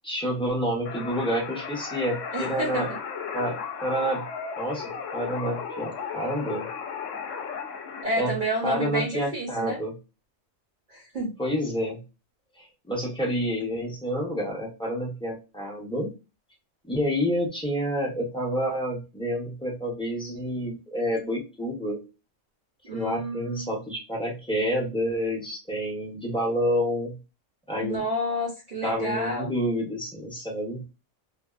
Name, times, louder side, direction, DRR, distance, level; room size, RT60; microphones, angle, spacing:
voice 1, 0.0-2.9 3.3-4.3 4.6-6.7 8.2-8.3 8.6-10.0 11.4-12.0 12.6-16.1 16.9-22.0 22.9-27.2 27.7-28.0 28.8-30.8, equal, 5° left, -2 dB, 0.5 m, -29 dB
sound 1, 0.9-8.0, left 6 dB, 75° left, 0.9 m, -35 dB
voice 2, 2.3-3.0 8.0-9.8 10.9-11.4 22.9-23.7 27.8-29.5, equal, 45° right, -2 dB, 0.8 m, -30 dB
2.6 x 2.2 x 2.3 m, 0.28 s
omnidirectional pair, 1.4 m